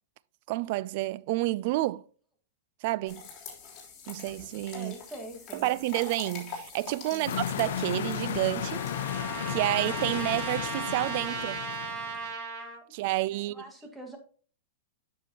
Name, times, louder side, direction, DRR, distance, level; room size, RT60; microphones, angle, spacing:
voice 1, 0.5-2.0 2.8-3.2 4.1-4.9 5.5-11.6 12.9-13.6, right 18 dB, 50° right, 0.3 m, -30 dB
sound 1, 3.1-10.1, left 6 dB, 30° left, 3.4 m, -45 dB
voice 2, 4.7-5.7 7.1-7.4 13.3-14.2, right 1 dB, 5° right, 1.7 m, -44 dB
sound 2, 7.3-12.3, left 9 dB, 70° left, 0.8 m, -34 dB
Trumpet, 7.7-12.8, right 5 dB, 35° right, 1.9 m, -37 dB
9.0 x 6.5 x 2.9 m
hypercardioid pair, 135°, 0 cm